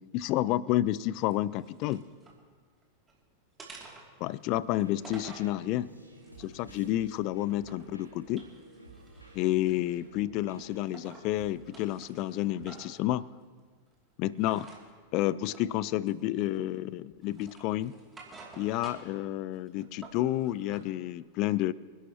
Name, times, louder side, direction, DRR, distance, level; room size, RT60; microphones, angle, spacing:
voice 1, 0.0-2.0 4.2-5.9 6.4-8.5 9.3-13.3 14.2-14.7 15.1-17.9 18.6-21.7, left 14 dB, 40° left, 21 dB, 0.4 m, -30 dB
sound 1, 1.2-2.4 2.8-3.2 3.6-5.5 6.1-7.9 8.2-10.1 10.5-11.3 11.6-13.0 14.4-14.8 15.5-15.7 16.1-16.8 17.2-19.2 19.5-20.9, right 3 dB, 15° right, 2.6 m, -51 dB
sound 2, 4.5-11.6, right 1 dB, 85° left, 2.3 m, -52 dB
26.5 x 11.5 x 3.0 m, 1.5 s
figure-of-eight pair, 90°, 0 cm